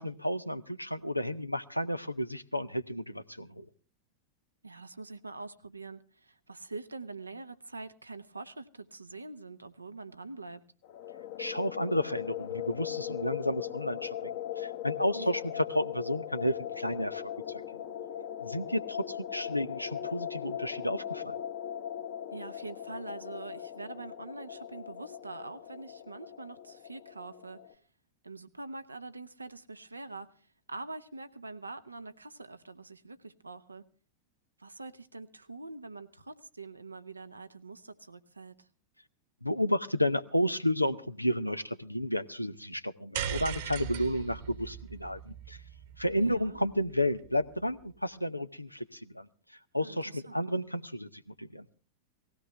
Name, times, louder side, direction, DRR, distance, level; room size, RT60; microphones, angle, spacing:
voice 1, 0.0-3.7 11.4-17.6 18.4-21.3 39.4-45.6 46.0-49.3 49.7-51.7, equal, 90° left, 12 dB, 0.7 m, -32 dB
voice 2, 4.6-10.6 15.1-15.5 22.3-27.8 28.2-33.8 34.6-38.7 46.1-46.6 49.8-50.4, right 3 dB, 80° right, 11 dB, 0.8 m, -44 dB
sound 1, 10.8-27.7, left 10 dB, 50° left, 1.2 m, -39 dB
sound 2, 43.1-47.5, right 9 dB, 55° right, 1.4 m, -39 dB
18.5 x 16.0 x 3.3 m, 0.39 s
figure-of-eight pair, 90°, 0 cm